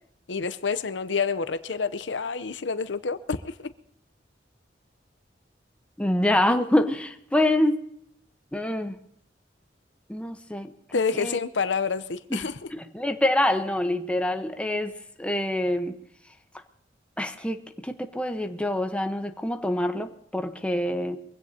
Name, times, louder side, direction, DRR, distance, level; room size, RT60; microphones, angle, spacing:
voice 1, 0.3-3.7 10.9-12.5, left 5 dB, 90° left, 13 dB, 0.7 m, -28 dB
voice 2, 6.0-7.8 8.5-9.0 10.1-10.7 11.1-11.4 12.3-12.4 12.7-15.9 17.2-21.2, left 1 dB, 5° left, 6 dB, 1.0 m, -26 dB
23.5 x 16.5 x 2.8 m, 0.75 s
head